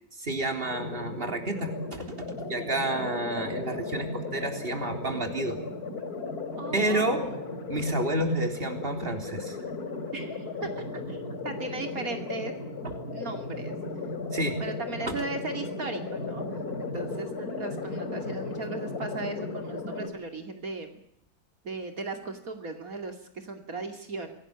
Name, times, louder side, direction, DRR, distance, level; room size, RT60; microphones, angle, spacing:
voice 1, 0.2-5.6 6.7-7.2 7.7-9.6 12.8-13.0 14.3-14.6 15.0-15.1, right 1 dB, 40° right, 5 dB, 3.8 m, -30 dB
sound 1, 0.6-20.1, left 3 dB, 85° left, 4.3 m, -36 dB
voice 2, 6.6-7.4 10.1-12.5 13.1-13.8 14.6-16.4 16.9-21.0 21.6-24.3, right 3 dB, 70° right, 5 dB, 3.0 m, -37 dB
25.5 x 18.0 x 8.8 m, 0.73 s
omnidirectional pair, 1.6 m